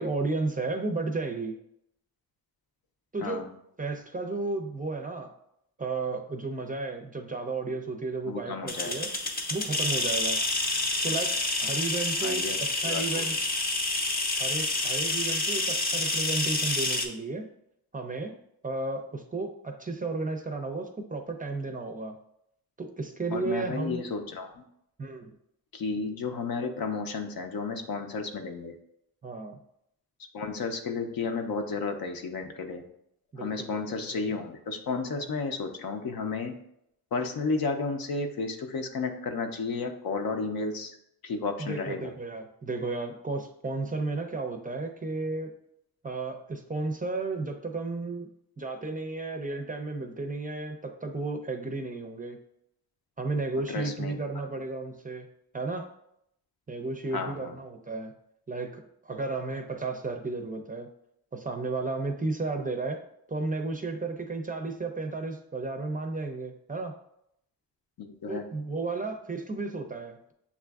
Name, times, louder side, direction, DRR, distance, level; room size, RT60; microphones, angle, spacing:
voice 1, 0.0-1.5 3.1-3.5 3.8-5.3 5.8-9.1 9.5-10.4 11.0-13.4 14.4-17.4 17.9-18.3 18.6-22.2 22.8-24.0 25.0-25.3 29.2-29.6 33.3-34.2 35.1-35.2 41.6-45.5 46.0-48.3 48.6-52.4 53.2-55.3 55.5-55.9 56.7-58.1 58.5-60.9 61.3-63.0 63.3-66.9 68.3-70.3, right 3 dB, 20° right, 5 dB, 0.4 m, -33 dB
voice 2, 8.3-8.9 12.2-12.6 12.8-13.3 23.3-24.6 25.7-28.8 30.3-32.9 33.4-36.6 37.1-41.0 41.2-42.1 53.7-54.1 57.1-57.5 68.0-68.4, left 4 dB, 65° left, 5 dB, 0.6 m, -32 dB
sound 1, 8.7-17.1, left 2 dB, 25° left, 0.6 m, -28 dB
6.9 x 2.4 x 2.3 m, 0.76 s
cardioid pair, 70°, 38 cm